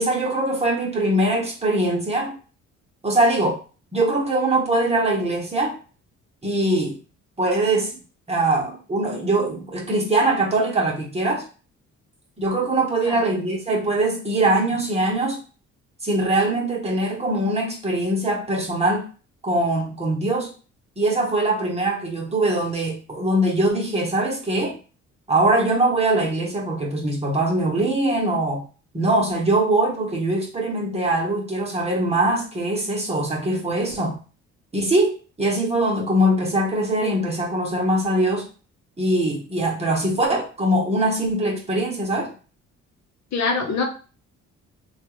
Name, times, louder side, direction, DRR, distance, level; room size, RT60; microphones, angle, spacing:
voice 1, 0.0-2.3 3.0-3.6 3.9-5.8 6.4-7.0 7.4-8.0 8.3-11.4 12.4-15.4 16.0-19.1 19.4-20.5 21.0-24.7 25.3-28.6 28.9-34.2 34.7-38.4 39.0-42.3, right 1 dB, 20° right, -2 dB, 1.0 m, -22 dB
voice 2, 43.3-43.8, left 4 dB, 65° left, 2 dB, 0.8 m, -24 dB
3.0 x 2.4 x 3.1 m, 0.36 s
cardioid pair, 90°, 30 cm